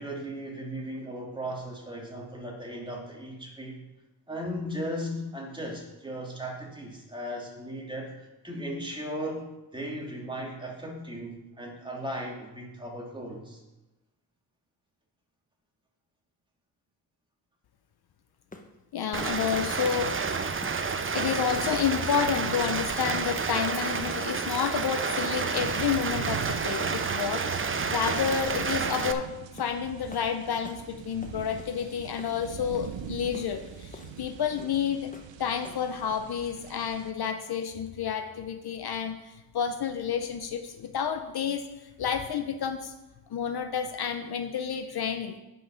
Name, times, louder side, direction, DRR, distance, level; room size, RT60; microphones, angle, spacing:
voice 1, 0.0-3.8 4.3-13.6, equal, 10° right, -2 dB, 2.6 m, -37 dB
sound 1, 18.5-18.8 19.2-19.4 19.8-20.1 20.6-20.8 21.3-21.5 22.0-22.1 22.7-23.0 23.3-23.5 24.0-24.2 24.5-24.8 25.1-25.3 25.7-25.9 26.3-26.5 26.9-27.1 27.5-27.6 28.1-28.3 29.0-29.2 29.6-29.8 30.1-30.3 30.6-30.9 31.2-31.8 32.2-32.4 32.7-32.9 33.3-33.5 33.9-34.2 34.6-34.8 35.1-35.3 35.6-35.9, left 2 dB, 20° left, 1.1 m, -47 dB
voice 2, 18.9-20.1 21.1-27.4 27.9-29.3 29.5-35.1 35.4-41.6 42.0-42.9 43.3-45.4, left 7 dB, 60° left, 7 dB, 0.9 m, -30 dB
Rain, 19.1-29.1, right 5 dB, 30° right, 0.7 m, -30 dB
sound 2, 25.6-37.1, right 9 dB, 80° right, 0.8 m, -42 dB
9.2 x 5.6 x 5.7 m, 1.0 s
cardioid pair, 80°, 44 cm